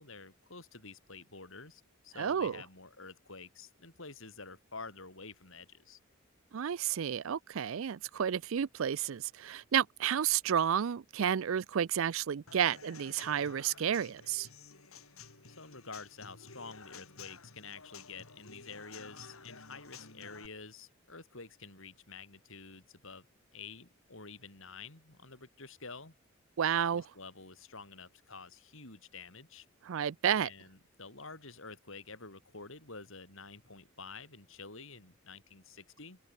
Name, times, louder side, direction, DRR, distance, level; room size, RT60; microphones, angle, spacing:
voice 1, 0.0-6.0 15.5-23.3 23.5-26.2 26.9-29.7 30.4-36.2, left 4 dB, 65° left, 6.1 m, -49 dB
voice 2, 2.2-2.6 6.5-14.5 26.6-27.0 29.9-30.5, right 8 dB, 65° right, 0.4 m, -31 dB
Human voice / Acoustic guitar / Drum, 12.5-20.5, left 5 dB, 85° left, 4.3 m, -53 dB
head